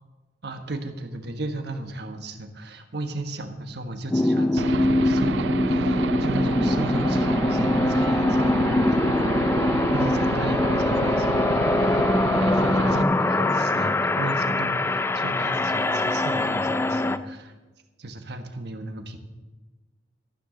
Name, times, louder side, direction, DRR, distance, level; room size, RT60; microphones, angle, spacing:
voice 1, 0.4-9.1 9.4-17.5 18.0-19.2, right 2 dB, 65° right, 6 dB, 1.3 m, -35 dB
sound 1, 4.1-17.2, left 2 dB, 15° left, 0.3 m, -23 dB
Aircraft / Engine, 4.6-13.0, right 5 dB, 90° right, 0.4 m, -30 dB
13.5 x 12.0 x 3.9 m, 1.2 s
head